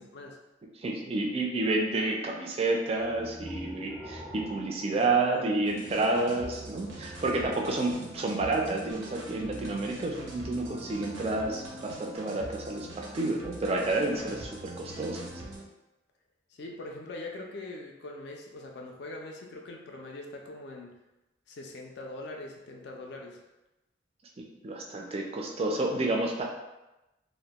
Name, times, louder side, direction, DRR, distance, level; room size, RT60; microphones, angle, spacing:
voice 1, 0.8-15.3 24.4-26.4, right 2 dB, 30° right, 0 dB, 0.3 m, -30 dB
sound 1, 3.0-6.2, equal, 15° left, 0.6 m, -45 dB
voice 2, 4.9-5.6 16.5-20.9 21.5-23.4, left 2 dB, 55° left, 1 dB, 0.3 m, -42 dB
sound 2, 5.7-15.6, right 2 dB, 85° right, 0.6 m, -43 dB
2.1 x 2.1 x 2.8 m, 0.99 s
head